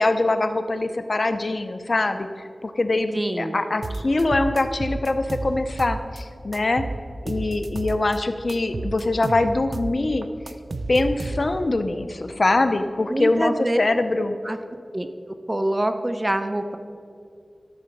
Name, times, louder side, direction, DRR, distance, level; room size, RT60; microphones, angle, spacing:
voice 1, 0.0-6.8 7.3-10.3 10.9-14.4, left 2 dB, 55° left, 9 dB, 0.6 m, -23 dB
voice 2, 3.1-3.6 13.1-13.8 14.1-14.6 14.9-15.1 15.5-16.8, right 1 dB, 25° right, 8 dB, 0.7 m, -25 dB
sound 1, 3.8-6.2 6.5-8.2 8.5-11.7, right 2 dB, 70° right, 0.5 m, -31 dB
13.0 x 6.7 x 5.3 m, 2.4 s
wide cardioid pair, 65°, 0 cm